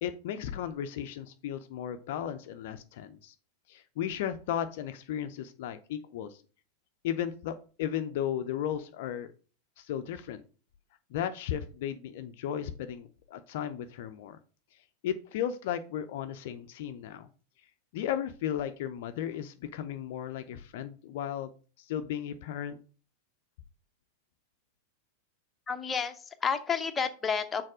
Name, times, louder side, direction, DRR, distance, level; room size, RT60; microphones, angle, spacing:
voice 1, 0.0-3.3 3.7-6.4 7.0-9.3 9.8-10.4 11.1-14.4 15.0-17.3 17.9-21.5 21.8-22.8, left 10 dB, 50° left, 9 dB, 0.5 m, -35 dB
voice 2, 25.7-27.6, left 6 dB, 15° left, 7 dB, 0.8 m, -30 dB
6.4 x 4.1 x 6.1 m, 0.38 s
figure-of-eight pair, 90°, 0 cm